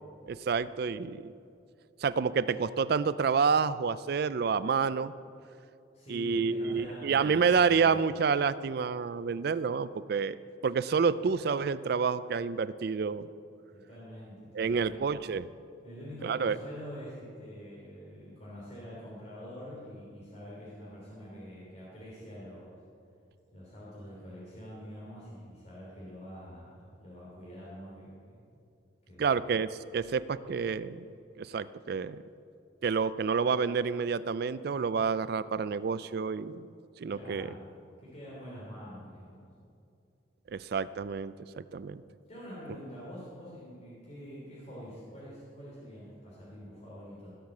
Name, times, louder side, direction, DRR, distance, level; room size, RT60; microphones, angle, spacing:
voice 1, 0.2-1.3 2.0-5.1 6.1-10.4 10.6-13.3 14.5-15.5 16.2-16.6 29.2-31.0 31.4-32.2 32.8-36.7 37.0-37.5 40.5-42.0, right 5 dB, 55° right, 16 dB, 0.3 m, -29 dB
voice 2, 5.9-8.0 13.7-15.0 15.8-22.8 23.5-28.4 29.1-29.4 37.1-37.6 38.0-39.4 42.3-47.4, equal, 35° left, -7 dB, 3.0 m, -46 dB
15.5 x 6.6 x 7.2 m, 2.5 s
head